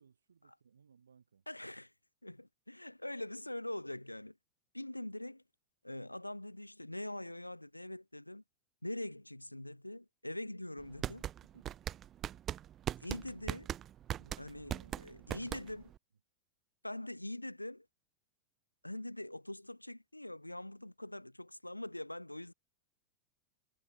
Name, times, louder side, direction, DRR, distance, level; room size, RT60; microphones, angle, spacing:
voice 1, 0.0-1.4 11.5-11.8 14.1-15.7, right 6 dB, 70° right, 1.9 m, -63 dB
voice 2, 1.5-1.9 2.2-4.4 4.7-5.4 5.8-8.4 8.8-11.3 13.0-13.7 14.4-15.9 16.8-17.9 18.8-22.5, left 1 dB, 85° left, 0.5 m, -43 dB
sound 1, 10.8-16.0, right 11 dB, 30° right, 0.3 m, -39 dB
figure-of-eight pair, 90°, 0 cm